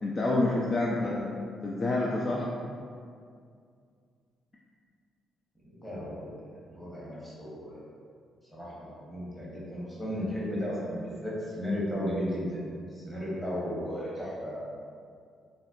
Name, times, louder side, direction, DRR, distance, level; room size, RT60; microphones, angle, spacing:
voice 1, 0.0-1.3 1.6-2.5, left 2 dB, 35° left, -4 dB, 0.3 m, -28 dB
voice 2, 5.6-6.3 6.7-7.8 8.5-12.6 12.9-14.7, equal, 10° left, -7 dB, 0.9 m, -35 dB
3.7 x 2.1 x 2.4 m, 2.2 s
cardioid pair, 90°, 0 cm